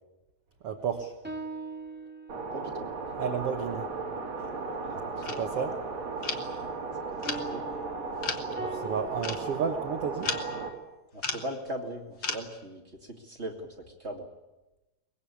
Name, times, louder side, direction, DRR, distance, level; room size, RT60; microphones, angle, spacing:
voice 1, 0.6-1.2 3.2-3.9 5.4-5.7 8.6-10.3, right 7 dB, 80° right, 6 dB, 1.3 m, -32 dB
sound 1, 0.8-2.7 7.2-10.8, right 1 dB, 5° right, 1.5 m, -42 dB
sound 2, 2.3-10.7, right 4 dB, 45° right, 3.6 m, -36 dB
voice 2, 2.5-2.9 4.8-5.7 7.1-7.6 11.1-14.3, right 1 dB, 20° right, 1 dB, 1.9 m, -40 dB
sound 3, 4.4-4.5 5.2-5.4 6.2-6.5 7.2-7.5 8.2-8.5 9.2-9.4 10.2-10.6 11.2-11.5 12.2-12.4, left 4 dB, 80° left, 0.9 m, -34 dB
23.0 x 22.0 x 8.6 m, 1.0 s
omnidirectional pair, 4.6 m